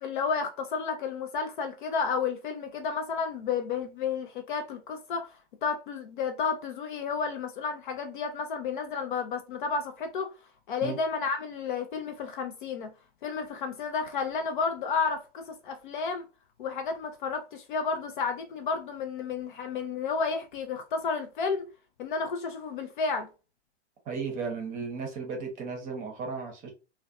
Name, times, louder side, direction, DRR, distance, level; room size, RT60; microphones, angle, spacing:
voice 1, 0.0-5.3 5.6-10.3 10.7-12.9 13.2-16.2 16.6-21.6 22.0-23.3, left 5 dB, 45° left, 0.5 m, -31 dB
voice 2, 24.1-26.7, right 5 dB, 25° right, 0.8 m, -35 dB
2.4 x 2.2 x 2.3 m
figure-of-eight pair, 110°, 35 cm